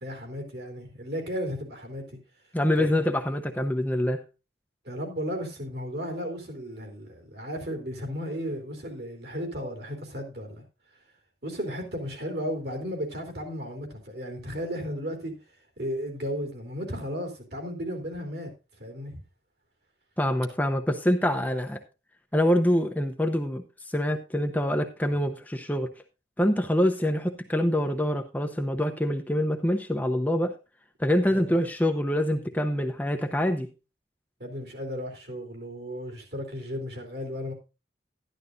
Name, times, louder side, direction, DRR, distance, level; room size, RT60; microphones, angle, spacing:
voice 1, 0.0-2.2 2.8-2.9 4.9-10.6 11.4-15.3 15.8-18.5 18.8-19.2 31.3-31.5 34.4-37.5, equal, 60° right, 3.4 m, -34 dB
voice 2, 2.5-4.2 20.2-21.8 22.3-25.9 26.4-30.5 31.0-33.7, left 1 dB, 10° left, 0.7 m, -25 dB
12.5 x 11.5 x 2.6 m
head